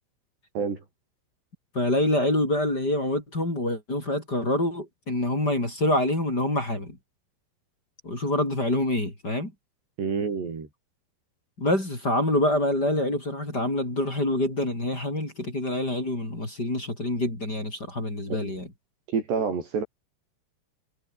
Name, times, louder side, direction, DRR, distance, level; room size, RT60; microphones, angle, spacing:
voice 1, 1.7-7.0 8.0-9.5 11.6-18.7, left 1 dB, 20° left, 7.0 m, -26 dB
voice 2, 10.0-10.7 18.3-18.4 19.1-19.8, right 5 dB, 60° right, 6.9 m, -28 dB
omnidirectional pair, 5.7 m